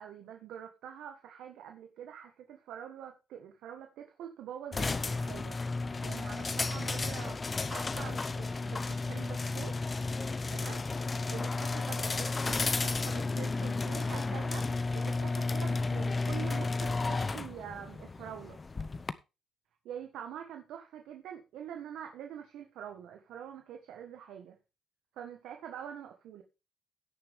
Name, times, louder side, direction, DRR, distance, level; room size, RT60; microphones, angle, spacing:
voice 1, 0.0-5.6 6.0-10.0 10.5-10.8 11.3-18.6 19.8-24.6 25.2-26.4, right 9 dB, 85° right, 4 dB, 1.5 m, -45 dB
sound 1, 4.7-19.1, left 3 dB, 30° left, 0.8 m, -33 dB
16.5 x 6.5 x 3.6 m, 0.28 s
cardioid pair, 90°, 0 cm